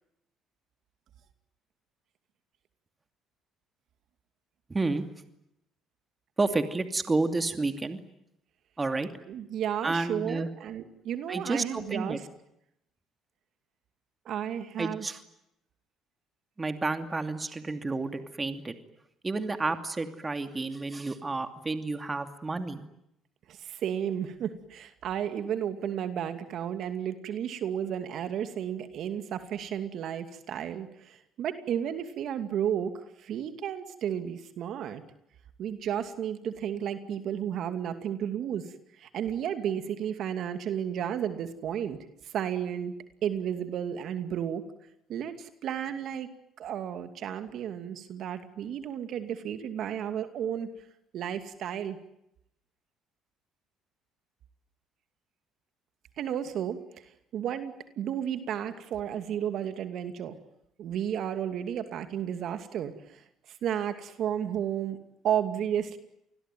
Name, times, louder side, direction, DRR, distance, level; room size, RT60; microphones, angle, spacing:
voice 1, 4.7-5.0 6.4-8.0 8.8-9.1 9.8-10.5 11.3-12.2 14.8-15.2 16.6-18.8 19.2-22.9, right 3 dB, 20° right, 8 dB, 2.7 m, -30 dB
voice 2, 9.3-12.2 14.3-15.1 23.5-35.0 35.6-38.6 39.0-42.0 42.2-42.9 43.2-44.6 45.1-46.3 46.6-50.7 51.1-52.0 56.2-56.8 57.3-60.4 60.8-65.0 65.2-66.0, right 9 dB, 65° right, 9 dB, 2.5 m, -33 dB
28.5 x 21.5 x 9.3 m, 0.80 s
cardioid pair, 90°, 0 cm